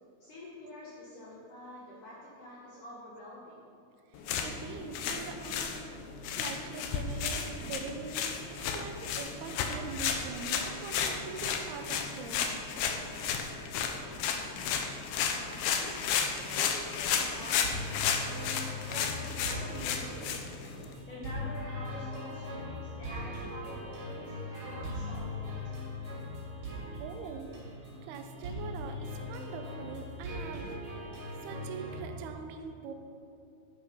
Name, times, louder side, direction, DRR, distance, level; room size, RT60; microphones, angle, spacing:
voice 1, 0.2-3.6 15.3-15.9 16.5-18.2 18.8-25.9, left 1 dB, 55° left, -7 dB, 2.6 m, -47 dB
sound 1, 4.1-20.9, left 7 dB, 80° left, 2.2 m, -33 dB
voice 2, 4.1-5.8 6.4-12.5 13.6-13.7 26.4-26.7 27.0-27.5 27.9-30.9 31.4-32.9, right 6 dB, 75° right, 5 dB, 2.5 m, -43 dB
sound 2, 17.6-32.0, left 1 dB, 40° right, 3.5 m, -40 dB
11.0 x 9.1 x 5.5 m, 2.6 s
omnidirectional pair, 5.3 m